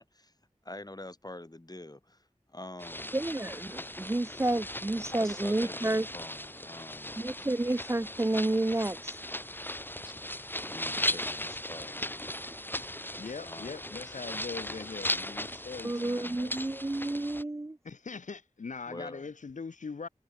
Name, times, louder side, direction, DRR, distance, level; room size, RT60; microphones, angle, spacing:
voice 1, 0.6-3.1 5.1-7.2 10.0-12.2 13.4-14.0 18.9-19.2, left 1 dB, 30° left, 2.9 m, -46 dB
sound 1, 2.8-17.4, left 1 dB, 15° left, 2.3 m, -37 dB
voice 2, 3.1-6.1 7.2-9.2 15.8-17.8, right 2 dB, 20° right, 0.5 m, -30 dB
voice 3, 13.2-16.5 17.8-20.1, left 4 dB, 90° left, 0.7 m, -41 dB
wide cardioid pair, 45°, 12 cm